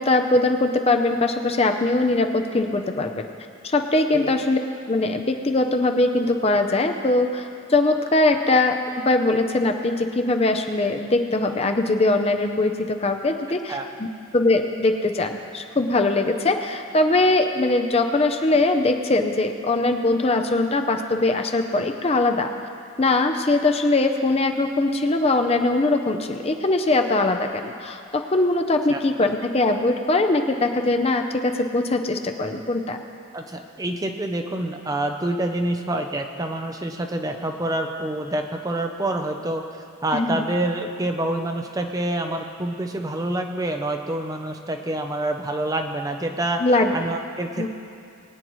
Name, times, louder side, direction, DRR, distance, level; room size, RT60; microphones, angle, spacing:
voice 1, 0.0-3.3 3.6-4.6 4.9-14.1 14.3-22.5 23.0-33.0 40.1-40.4 46.6-46.9 47.6-47.7, left 2 dB, 25° left, 5 dB, 0.6 m, -21 dB
voice 2, 33.3-46.6 46.9-47.7, right 1 dB, 15° right, 4 dB, 0.5 m, -27 dB
22.0 x 9.4 x 3.1 m, 2.5 s
head